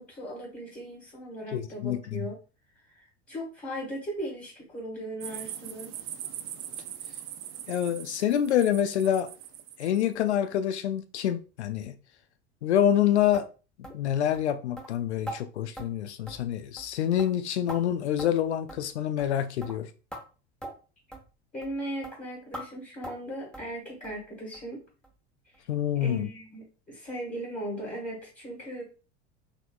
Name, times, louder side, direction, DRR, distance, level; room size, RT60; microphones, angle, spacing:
voice 1, 0.0-2.4 2.9-5.9 21.5-24.8 25.9-28.8, right 1 dB, 20° left, 1.5 m, -38 dB
voice 2, 1.5-2.3 7.7-9.3 9.8-11.9 12.6-13.4 13.9-19.9 25.7-26.3, left 10 dB, 80° left, 0.5 m, -26 dB
sound 1, 5.2-10.0, right 11 dB, 40° right, 0.4 m, -41 dB
sound 2, 13.3-13.5 13.8-14.0 14.3-14.5 14.8-14.9 15.3-15.4 15.8-15.9 16.3-16.5 16.8-16.9 17.2-17.8 18.2-18.4 18.7-18.8 19.2-19.3 19.6-19.8 20.1-20.2 20.6-20.7 21.1-21.3 21.6-21.8 22.0-22.2 22.5-22.7 23.0-23.2 23.5-23.7 24.0-24.2 24.5-24.7 25.0-25.1 25.5-25.6, right 1 dB, 5° left, 1.0 m, -41 dB
4.0 x 3.1 x 2.2 m
figure-of-eight pair, 80°, 34 cm